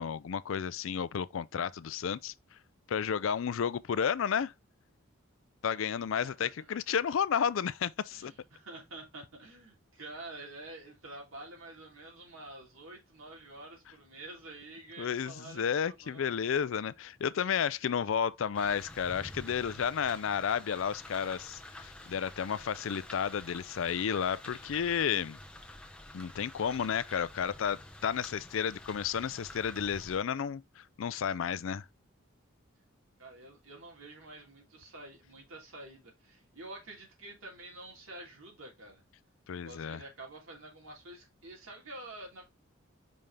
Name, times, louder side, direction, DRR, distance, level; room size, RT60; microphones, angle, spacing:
voice 1, 0.0-2.3 2.9-4.5 5.6-8.3 15.0-25.4 26.1-31.8 39.5-40.0, left 7 dB, 70° left, 0.4 m, -32 dB
voice 2, 6.2-6.5 8.1-16.4 17.8-18.1 33.2-39.0 39.5-42.4, right 2 dB, 80° right, 3.1 m, -48 dB
sound 1, 18.5-30.2, left 1 dB, 5° left, 0.9 m, -49 dB
5.5 x 5.2 x 3.3 m
head